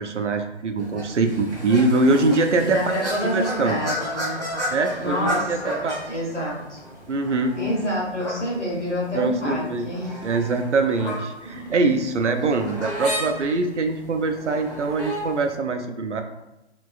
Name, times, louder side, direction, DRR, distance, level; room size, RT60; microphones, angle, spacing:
voice 1, 0.0-3.0 3.2-3.8 4.7-6.0 7.1-7.6 9.1-9.9 10.2-16.2, right 3 dB, 80° right, 7 dB, 0.5 m, -23 dB
sound 1, 0.8-15.5, equal, 5° right, 0.4 m, -34 dB
voice 2, 2.6-4.4 5.0-6.8 7.5-10.2 11.4-11.8, equal, 85° left, -4 dB, 1.2 m, -28 dB
3.4 x 2.9 x 2.4 m, 0.95 s
figure-of-eight pair, 130°, 34 cm